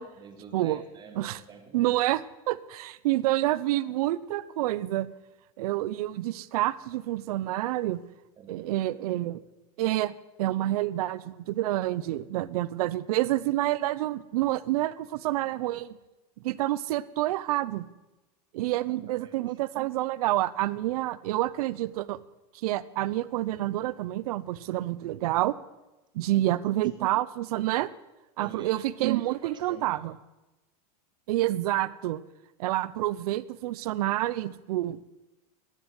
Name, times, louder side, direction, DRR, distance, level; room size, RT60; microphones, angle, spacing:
voice 1, 0.1-2.0 8.4-8.9 18.7-19.4 26.2-26.5 28.4-30.0, right 6 dB, 20° right, 4 dB, 2.3 m, -48 dB
voice 2, 1.7-5.1 5.6-8.0 8.5-9.4 9.8-10.1 10.4-16.0 16.4-17.8 18.5-22.2 22.6-25.5 26.1-27.9 28.4-30.1 31.3-32.2 32.6-35.0, right 15 dB, 75° right, 17 dB, 0.8 m, -28 dB
13.0 x 10.0 x 9.7 m, 1.0 s
supercardioid pair, 150°, 20 cm